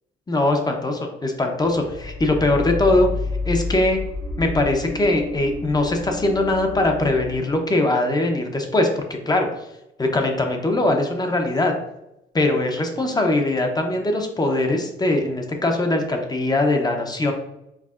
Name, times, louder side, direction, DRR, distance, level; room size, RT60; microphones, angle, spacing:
voice 1, 0.3-3.1 3.4-4.0 4.4-9.5 10.0-11.7 12.3-17.3, left 2 dB, 20° left, 3 dB, 0.7 m, -21 dB
sound 1, 1.6-7.4, left 2 dB, 80° left, 0.8 m, -30 dB
4.7 x 2.6 x 2.4 m, 0.85 s
cardioid pair, 90°, 20 cm